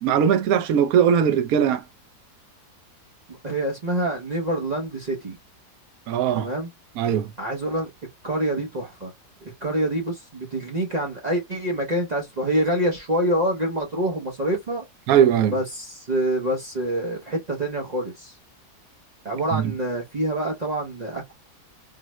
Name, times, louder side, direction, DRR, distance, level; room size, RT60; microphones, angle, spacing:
voice 1, 0.0-1.8 6.1-6.5 7.0-7.3 15.1-15.6 19.5-19.7, right 8 dB, 70° right, 1.0 m, -20 dB
voice 2, 3.3-5.4 6.3-6.7 7.4-7.9 8.2-9.1 9.4-14.8 15.5-18.3 19.2-21.3, right 1 dB, 50° right, 0.5 m, -26 dB
3.9 x 2.0 x 3.0 m
omnidirectional pair, 1.7 m